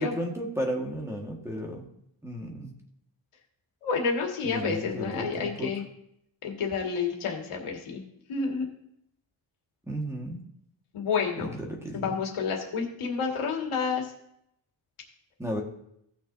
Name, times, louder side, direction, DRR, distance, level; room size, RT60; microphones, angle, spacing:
voice 1, 0.0-1.9 2.2-2.7 4.4-5.7 9.8-10.4 11.4-12.2 15.4-15.6, equal, 5° right, 0 dB, 1.6 m, -33 dB
voice 2, 3.8-5.8 6.4-8.0 8.3-8.7 10.9-11.5 11.9-14.1, left 5 dB, 75° left, 1 dB, 2.1 m, -29 dB
17.0 x 6.1 x 2.7 m, 0.74 s
wide cardioid pair, 125°, 50 cm